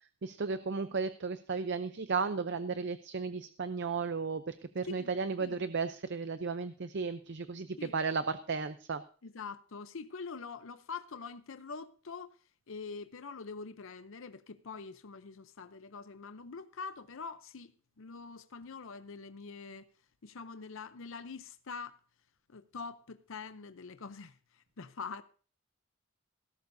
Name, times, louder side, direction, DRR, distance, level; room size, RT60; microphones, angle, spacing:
voice 1, 0.2-9.0, right 4 dB, 55° right, 0.6 m, -34 dB
voice 2, 9.2-12.4 12.7-19.9 20.2-22.0 22.5-25.2, left 5 dB, 65° left, 0.7 m, -45 dB
18.0 x 11.5 x 2.7 m
head